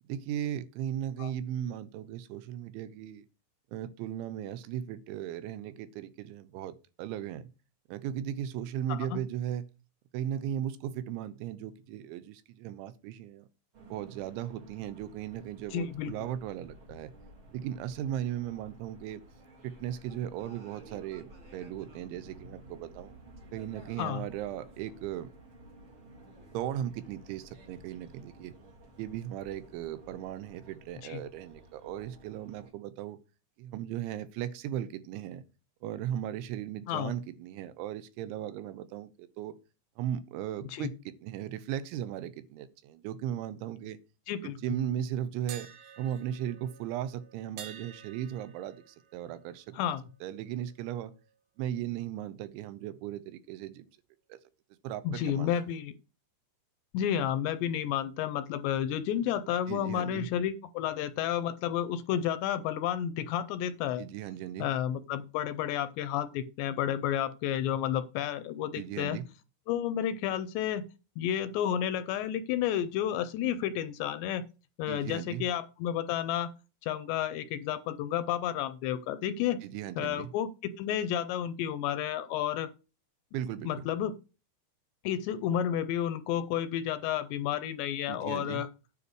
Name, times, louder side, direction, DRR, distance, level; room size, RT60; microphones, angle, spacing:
voice 1, 0.1-3.3 3.7-7.5 7.9-9.7 10.1-13.5 13.9-17.1 17.5-19.2 19.6-23.1 23.5-25.3 26.5-28.5 29.0-33.2 33.6-35.4 35.8-39.6 40.0-44.0 44.4-45.7 46.0-49.8 50.2-51.1 51.6-53.9 54.3-54.4 54.8-55.6 59.7-60.3 64.0-64.7 68.8-69.3 74.9-75.5 79.6-80.3 83.3-83.9 88.1-88.6, right 11 dB, 90° right, 3.2 m, -37 dB
sound 1, 13.7-32.7, right 1 dB, 55° right, 1.4 m, -53 dB
voice 2, 15.7-16.1 24.0-24.2 31.0-31.2 36.9-37.1 40.7-40.9 44.3-44.6 49.7-50.0 55.0-55.9 56.9-64.0 64.6-69.2 69.7-70.8 71.2-74.4 74.8-76.5 76.8-79.6 80.0-80.5 80.8-82.7 83.7-84.1 85.0-88.7, left 10 dB, 80° left, 2.6 m, -31 dB
sound 2, 45.5-51.4 51.7-51.9 55.4-55.8, right 8 dB, 70° right, 2.1 m, -51 dB
9.6 x 5.1 x 6.3 m
omnidirectional pair, 5.3 m